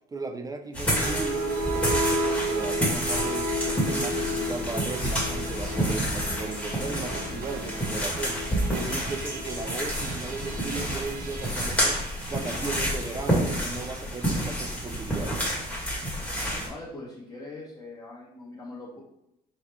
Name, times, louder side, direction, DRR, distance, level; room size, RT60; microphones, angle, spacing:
voice 1, 0.1-12.0 12.3-15.5, right 3 dB, 20° right, 6 dB, 0.4 m, -36 dB
sound 1, 0.7-16.7, equal, 5° left, 1.7 m, -29 dB
sound 2, 0.7-13.1, right 1 dB, 65° right, 1.3 m, -33 dB
voice 2, 16.6-19.0, left 2 dB, 20° left, -8 dB, 1.3 m, -42 dB
4.6 x 3.1 x 3.4 m, 0.82 s
cardioid pair, 110°, 17 cm